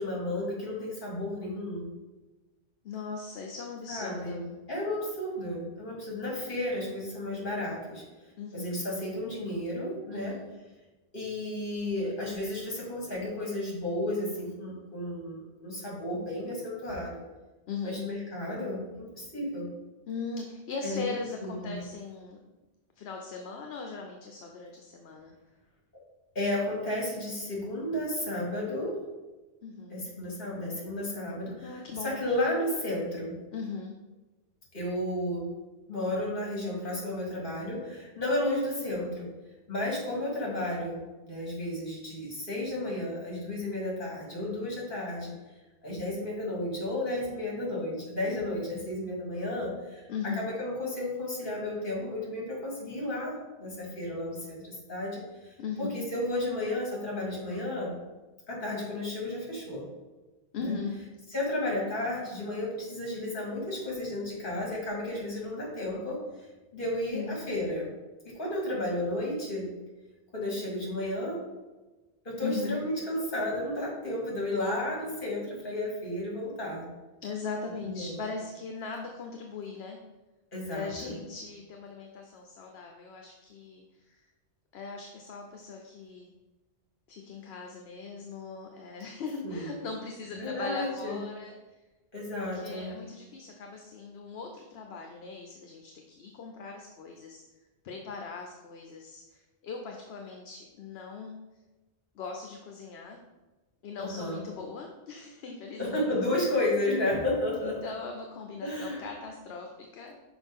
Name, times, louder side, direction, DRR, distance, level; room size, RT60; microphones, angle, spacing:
voice 1, 0.0-1.8 3.9-8.0 8.5-10.4 11.1-17.2 17.8-19.7 20.8-21.1 21.4-21.8 26.4-29.1 29.9-33.4 34.7-35.5 35.9-39.3 39.7-45.3 45.8-57.9 58.5-59.9 60.5-60.7 61.3-66.3 66.7-67.9 68.2-69.7 70.3-71.5 72.2-76.9 77.8-78.2 80.5-81.2 89.4-89.7 90.3-91.2 92.1-93.0 104.0-104.4 105.8-107.9 108.6-109.0, left 1 dB, 50° left, -4 dB, 2.2 m, -33 dB
voice 2, 2.8-4.5 8.4-8.7 10.1-10.5 17.7-17.9 20.1-22.4 23.0-25.3 29.6-30.0 31.6-32.1 33.5-33.9 50.1-50.5 55.6-56.0 60.5-61.0 67.1-67.4 72.4-72.8 77.2-80.0 80.7-84.2 84.7-86.3 87.1-91.6 92.3-97.4 97.8-101.4 102.1-103.2 103.8-106.1 107.6-110.2, left 4 dB, 70° left, 2 dB, 0.9 m, -39 dB
6.0 x 4.8 x 3.5 m, 1.2 s
omnidirectional pair, 1.1 m